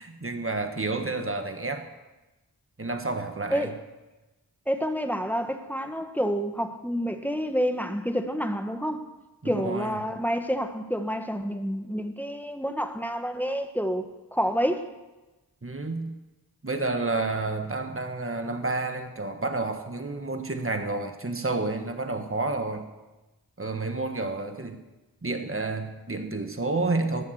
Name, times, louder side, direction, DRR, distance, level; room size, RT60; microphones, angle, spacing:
voice 1, 0.0-1.9 2.8-3.7 9.4-10.0 15.6-16.1 16.6-22.9 23.6-24.8 25.2-27.2, right 3 dB, 35° right, 1.5 m, -30 dB
voice 2, 4.7-9.0 9.4-14.9, equal, 5° left, 1.3 m, -28 dB
20.5 x 7.2 x 8.0 m
wide cardioid pair, 55°, 37 cm